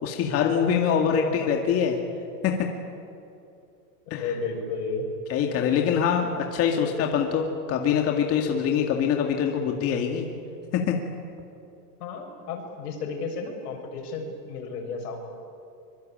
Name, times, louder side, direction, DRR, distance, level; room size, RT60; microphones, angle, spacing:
voice 1, 0.0-2.0 2.4-2.5 4.1-4.2 5.3-10.3 10.7-10.9, left 7 dB, 30° left, 2 dB, 2.2 m, -24 dB
voice 2, 0.9-1.5 2.0-2.1 4.1-5.1 5.5-5.7 6.7-7.0 12.0-15.3, left 4 dB, 80° left, 2 dB, 6.8 m, -33 dB
24.5 x 24.0 x 9.0 m, 2.6 s
supercardioid pair, 155°, 46 cm